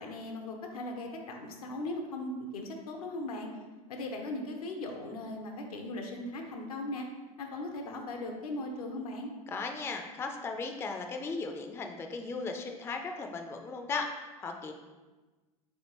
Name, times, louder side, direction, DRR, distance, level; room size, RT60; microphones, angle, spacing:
voice 1, 0.0-3.5 3.9-7.1 7.4-9.3, left 2 dB, 80° left, 2 dB, 0.6 m, -38 dB
voice 2, 9.5-14.7, left 4 dB, 15° left, 4 dB, 0.3 m, -37 dB
3.6 x 3.4 x 2.9 m, 1.2 s
hypercardioid pair, 80°, 19 cm